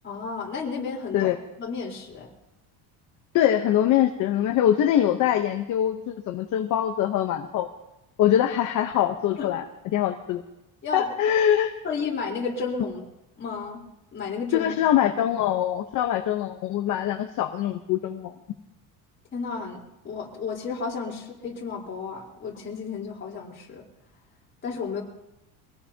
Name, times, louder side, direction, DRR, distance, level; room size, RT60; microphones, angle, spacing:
voice 1, 0.0-1.3 1.6-2.3 9.4-9.5 10.8-11.1 11.8-13.0 13.4-13.8 14.1-14.7 19.3-19.8 20.0-23.8 24.6-25.0, left 5 dB, 25° left, -3 dB, 4.0 m, -32 dB
voice 2, 3.3-7.7 8.2-9.6 9.9-10.4 10.9-11.7 14.5-18.3, left 11 dB, 45° left, 5 dB, 1.0 m, -23 dB
24.5 x 18.0 x 2.9 m, 0.92 s
cardioid pair, 170°, 44 cm